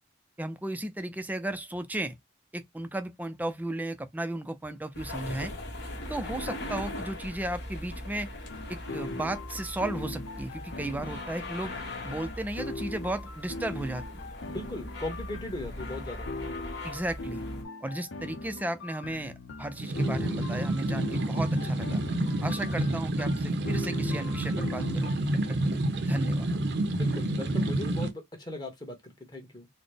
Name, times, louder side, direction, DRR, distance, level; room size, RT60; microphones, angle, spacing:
voice 1, 0.4-2.2 2.5-5.5 6.1-8.3 8.7-11.7 12.0-14.0 16.8-17.4 17.8-19.3 19.6-22.0 22.4-25.1 25.7-26.5, right 1 dB, 10° right, 0.4 m, -34 dB
sound 1, 4.9-17.6, left 1 dB, 55° left, 1.2 m, -40 dB
sound 2, 8.5-25.2, left 2 dB, 80° left, 0.7 m, -41 dB
voice 2, 14.5-16.3 27.0-29.7, left 1 dB, 20° left, 1.1 m, -38 dB
sound 3, 19.7-28.1, right 1 dB, 60° right, 0.6 m, -29 dB
4.0 x 2.1 x 3.3 m
head